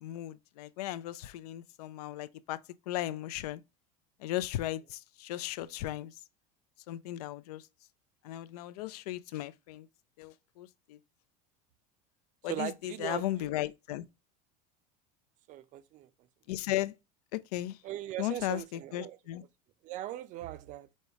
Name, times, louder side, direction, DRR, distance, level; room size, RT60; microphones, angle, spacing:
voice 1, 0.0-2.6 2.9-3.6 4.2-6.2 6.9-7.7 8.2-9.9 10.2-11.0 12.4-14.1 16.5-16.9 17.3-17.8 18.2-19.4, left 14 dB, 85° left, 0.4 m, -36 dB
voice 2, 12.4-13.5 15.5-16.1 17.8-19.2 19.8-20.9, right 13 dB, 40° right, 0.4 m, -39 dB
5.3 x 2.1 x 4.5 m
supercardioid pair, 130°, 19 cm